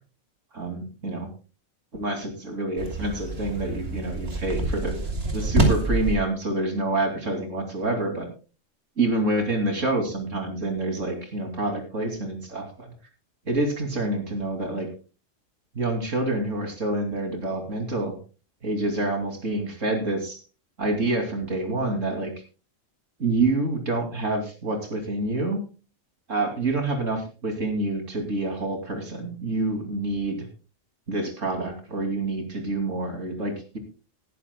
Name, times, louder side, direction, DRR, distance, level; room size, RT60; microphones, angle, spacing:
voice 1, 0.5-1.3 1.9-5.0 5.3-8.3 9.0-12.9 13.5-14.9 15.7-18.2 18.6-20.4 20.8-22.3 23.2-25.6 26.3-30.5 31.1-33.8, right 2 dB, 70° right, 4 dB, 3.0 m, -27 dB
sound 1, 2.8-6.2, right 2 dB, 50° right, 2.9 m, -26 dB
19.0 x 11.0 x 2.2 m, 0.33 s
omnidirectional pair, 1.3 m